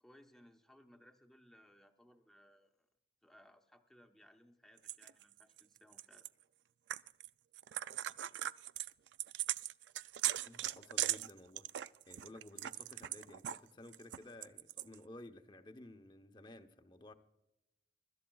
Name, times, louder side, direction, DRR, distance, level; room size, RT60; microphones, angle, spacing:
voice 1, 0.0-2.9 3.2-6.3, equal, ahead, 4 dB, 0.9 m, -63 dB
sound 1, 4.9-6.3 6.9-7.3 7.5-13.6 13.9-14.9, right 13 dB, 75° right, 0.3 m, -39 dB
voice 2, 10.4-17.1, left 1 dB, 25° left, 8 dB, 0.8 m, -55 dB
24.0 x 12.5 x 2.3 m, 0.90 s
head